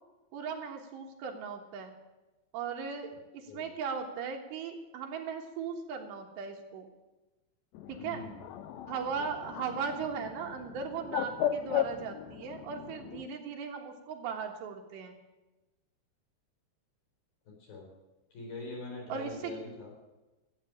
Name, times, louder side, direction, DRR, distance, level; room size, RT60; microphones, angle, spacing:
voice 1, 0.3-2.0 2.5-6.9 7.9-8.3 8.9-15.2 19.1-19.6, right 6 dB, 75° right, 3 dB, 3.6 m, -38 dB
Bird, 7.7-13.3, left 10 dB, 80° left, 2.4 m, -36 dB
voice 2, 8.0-8.4 17.7-17.9 18.3-19.9, left 3 dB, 55° left, -1 dB, 6.1 m, -42 dB
14.5 x 8.8 x 8.8 m, 1.1 s
omnidirectional pair, 5.1 m